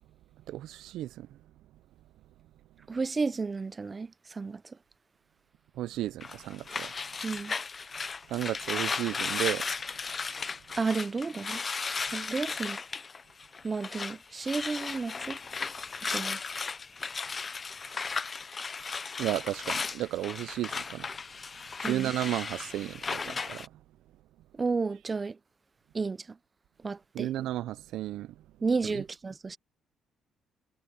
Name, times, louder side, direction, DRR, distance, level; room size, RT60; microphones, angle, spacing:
voice 1, 0.5-1.3 5.8-6.9 8.3-9.6 19.2-21.1 21.8-23.7 27.1-28.3 28.9-29.0, right 14 dB, 90° right, 0.4 m, -33 dB
voice 2, 2.9-4.8 7.2-7.5 10.8-11.6 12.0-12.8 13.6-15.4 16.1-16.4 21.8-22.1 24.5-25.4 25.9-26.4 26.8-27.3 28.6-29.6, right 4 dB, 20° right, 0.5 m, -32 dB
sound 1, 6.2-14.2 14.4-23.7, left 5 dB, 25° left, 0.6 m, -35 dB
cardioid pair, 155°, 0 cm